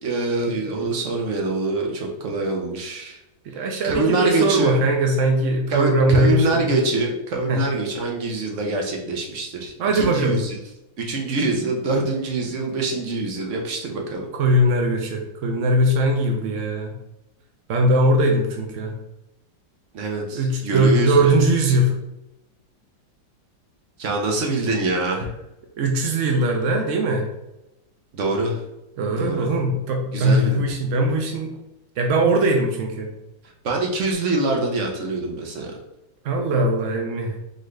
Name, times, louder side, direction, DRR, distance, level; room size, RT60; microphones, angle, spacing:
voice 1, 0.0-3.2 3.8-4.9 5.7-10.6 11.0-14.3 19.9-21.3 24.0-25.3 28.1-28.6 29.2-29.5 30.1-30.6 33.6-35.7, right 2 dB, 50° right, 1 dB, 0.9 m, -24 dB
voice 2, 3.4-6.7 7.5-7.6 9.8-10.4 14.3-17.0 17.7-19.0 20.3-21.9 25.8-27.3 29.0-31.5 32.0-33.1 36.2-37.3, right 1 dB, 85° right, 3 dB, 0.6 m, -20 dB
4.1 x 3.9 x 3.2 m, 0.90 s
omnidirectional pair, 2.1 m